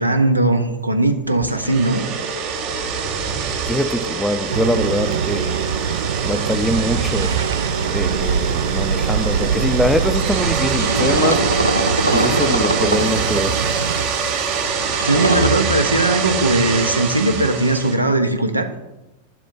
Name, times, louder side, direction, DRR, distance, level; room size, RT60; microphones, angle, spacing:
voice 1, 0.0-2.2 15.0-18.7, right 2 dB, 85° right, 0.7 m, -19 dB
sound 1, 1.4-17.9, right 6 dB, 45° right, 1.1 m, -24 dB
voice 2, 3.7-5.7 6.2-7.4 7.9-11.5 12.1-13.6, equal, ahead, 0.4 m, -23 dB
sound 2, 4.5-14.0, right 7 dB, 65° right, 0.4 m, -24 dB
sound 3, 8.2-9.0 9.4-15.5, right 1 dB, 90° left, 0.6 m, -24 dB
11.5 x 7.1 x 2.7 m
figure-of-eight pair, 90°, 0 cm